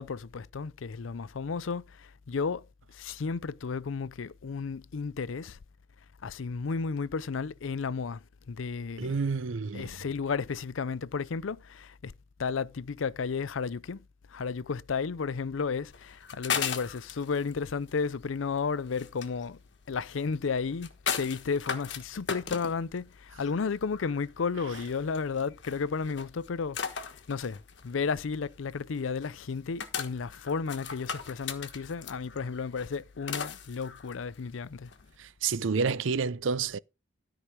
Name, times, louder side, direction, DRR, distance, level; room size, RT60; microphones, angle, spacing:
voice 1, 0.0-2.6 2.9-5.6 6.2-8.2 8.5-9.1 9.7-12.1 12.4-14.0 14.3-19.6 19.9-34.9, left 5 dB, 90° left, 0.5 m, -33 dB
voice 2, 9.0-10.0 35.2-36.8, right 5 dB, 80° right, 0.5 m, -29 dB
sound 1, 15.9-35.1, left 7 dB, 65° left, 1.3 m, -38 dB
13.0 x 4.9 x 5.9 m
head